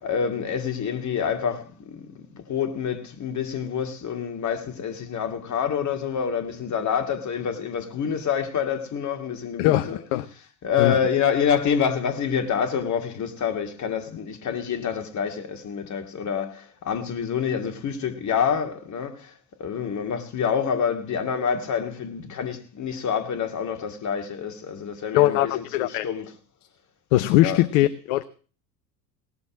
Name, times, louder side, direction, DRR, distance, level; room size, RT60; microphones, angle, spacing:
voice 1, 0.0-10.0 10.6-19.3 19.6-26.3 27.4-27.6, left 7 dB, 35° left, 2.3 m, -27 dB
voice 2, 9.6-10.3 10.8-10.9 25.1-26.1 27.1-28.2, left 15 dB, 55° left, 0.9 m, -21 dB
18.0 x 7.2 x 7.2 m
hypercardioid pair, 75°, 50 cm